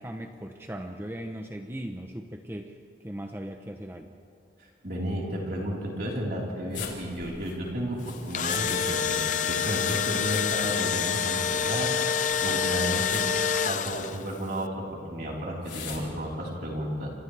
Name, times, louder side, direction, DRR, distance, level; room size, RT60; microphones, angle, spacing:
voice 1, 0.0-4.1, right 1 dB, 15° right, 4 dB, 0.8 m, -38 dB
voice 2, 4.6-13.2 13.6-17.1, equal, 55° right, -4 dB, 4.2 m, -33 dB
sound 1, 6.7-8.8 9.1-10.9 11.2-11.3 12.3-13.4 13.9-14.2 15.6-16.0, left 6 dB, 90° left, 3.8 m, -40 dB
Engine / Drill, 8.1-14.3, left 7 dB, 45° left, 0.6 m, -27 dB
28.5 x 26.5 x 3.4 m, 2.6 s
head